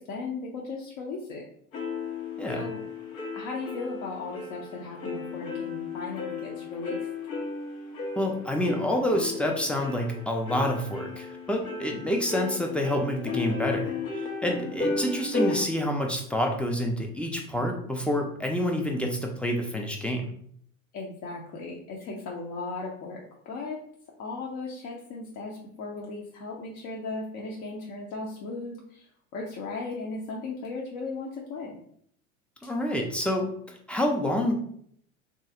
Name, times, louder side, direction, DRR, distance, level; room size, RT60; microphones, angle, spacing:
voice 1, 0.0-1.4 2.5-2.8 3.3-7.1 14.6-14.8 20.9-23.8 24.2-31.8 32.6-32.7, left 3 dB, 45° left, -2 dB, 0.7 m, -37 dB
sound 1, 1.7-15.6, left 3 dB, 80° left, 0.9 m, -34 dB
voice 2, 8.2-20.3 32.6-33.5 33.9-34.5, left 1 dB, 5° left, 2 dB, 0.4 m, -28 dB
3.0 x 2.4 x 2.7 m, 0.65 s
hypercardioid pair, 80°, 40 cm